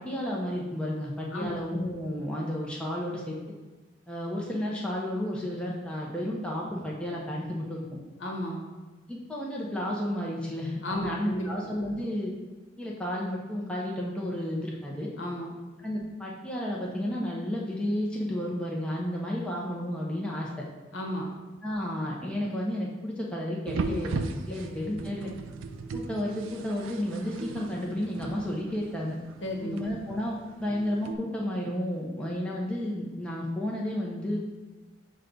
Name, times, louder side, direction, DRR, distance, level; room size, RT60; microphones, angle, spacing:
voice 1, 0.0-3.4 4.1-7.8 9.1-12.3 12.8-15.1 15.8-20.7 21.6-24.2 24.5-25.3 25.9-29.2 29.6-34.4, left 1 dB, 5° left, -4 dB, 0.5 m, -32 dB
voice 2, 8.2-8.7 10.8-11.7 15.2-15.5 20.9-21.3 29.4-29.8, equal, 75° left, -1 dB, 0.9 m, -33 dB
sound 1, 23.7-31.2, right 3 dB, 90° right, 0.4 m, -37 dB
6.3 x 2.2 x 3.8 m, 1.3 s
head